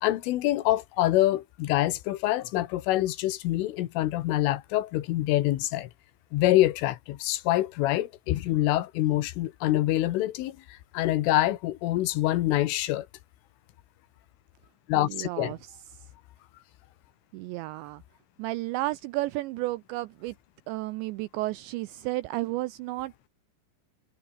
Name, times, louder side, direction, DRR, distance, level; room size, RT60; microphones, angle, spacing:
voice 1, 0.0-5.9 6.3-10.6 10.9-13.1 14.9-15.5, left 15 dB, 80° left, 3.8 m, -25 dB
voice 2, 15.0-15.6 17.3-18.0 18.4-20.3 20.7-23.1, right 18 dB, 85° right, 2.6 m, -32 dB
omnidirectional pair, 5.8 m